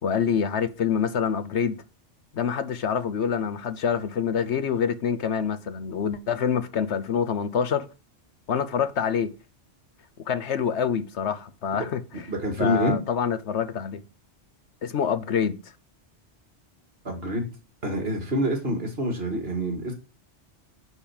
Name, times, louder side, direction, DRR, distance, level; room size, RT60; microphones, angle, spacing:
voice 1, 0.0-1.8 2.3-7.9 8.5-9.3 10.3-12.3 12.6-14.0 14.8-15.6, left 7 dB, 70° left, 1.1 m, -26 dB
voice 2, 12.3-13.0 17.0-17.5 17.8-19.9, equal, 55° right, 2.3 m, -26 dB
9.8 x 4.3 x 7.2 m
omnidirectional pair, 1.2 m